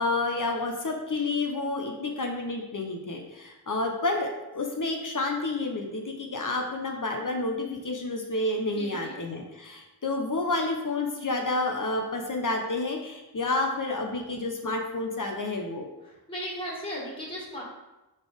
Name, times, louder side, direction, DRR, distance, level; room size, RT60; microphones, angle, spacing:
voice 1, 0.0-15.9, left 2 dB, 50° left, 2 dB, 0.9 m, -30 dB
voice 2, 8.7-9.2 16.0-17.6, equal, 15° left, -4 dB, 2.1 m, -36 dB
5.6 x 4.2 x 5.1 m, 1.0 s
wide cardioid pair, 70°, 40 cm